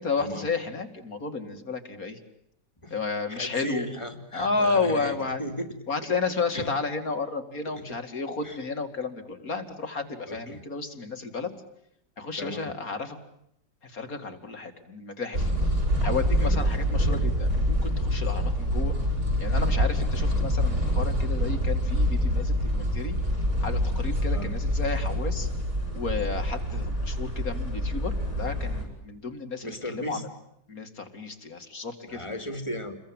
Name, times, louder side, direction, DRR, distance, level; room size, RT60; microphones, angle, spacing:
voice 1, 0.0-2.2 2.9-3.9 4.3-5.4 5.9-11.5 12.2-13.2 13.8-19.0 19.4-23.2 23.6-25.5 25.9-30.3 30.7-32.3, left 4 dB, 50° left, 7 dB, 3.0 m, -32 dB
voice 2, 3.3-5.7 6.5-6.8 7.7-7.8 8.4-8.6 10.3-10.6 12.4-12.7 16.4-16.6 24.2-24.5 29.6-30.2 32.1-33.0, left 1 dB, 15° left, 8 dB, 2.9 m, -36 dB
sound 1, 15.3-28.8, equal, 50° right, 8.1 m, -26 dB
29.5 x 22.5 x 9.0 m, 0.76 s
omnidirectional pair, 2.0 m